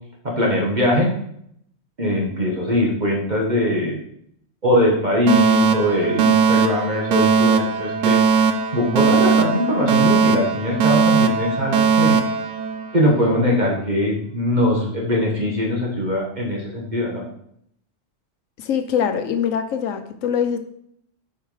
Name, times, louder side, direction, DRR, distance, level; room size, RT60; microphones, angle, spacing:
voice 1, 0.2-1.1 2.0-4.0 4.6-12.2 12.9-17.3, left 1 dB, 35° right, -1 dB, 1.3 m, -21 dB
Alarm, 5.3-13.3, right 5 dB, 75° right, 1.0 m, -19 dB
voice 2, 18.6-20.6, left 8 dB, 90° left, 9 dB, 1.1 m, -23 dB
6.8 x 4.7 x 4.9 m, 0.71 s
omnidirectional pair, 1.3 m